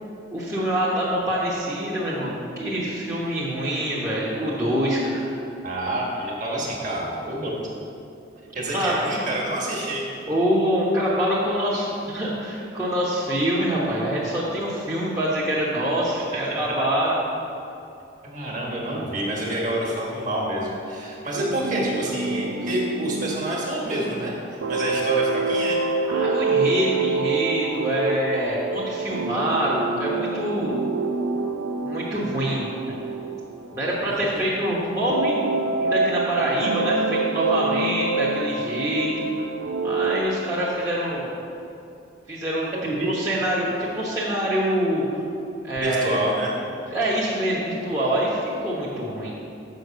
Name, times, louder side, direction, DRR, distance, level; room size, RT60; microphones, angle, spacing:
voice 1, 0.3-5.3 8.7-8.9 10.3-17.2 26.0-30.8 31.8-33.0 33.7-39.2 39.8-41.3 42.3-42.7 43.0-45.2 45.6-46.2 46.9-49.3, equal, 15° right, -8 dB, 1.0 m, -25 dB
voice 2, 5.6-7.7 8.5-10.0 16.2-16.7 18.2-25.8 34.0-34.4 42.8-43.1 45.8-46.5, right 1 dB, 40° right, -3 dB, 1.6 m, -28 dB
sound 1, 21.3-34.6 35.1-40.2, right 3 dB, 85° right, 0.5 m, -27 dB
6.5 x 5.7 x 6.6 m, 2.6 s
head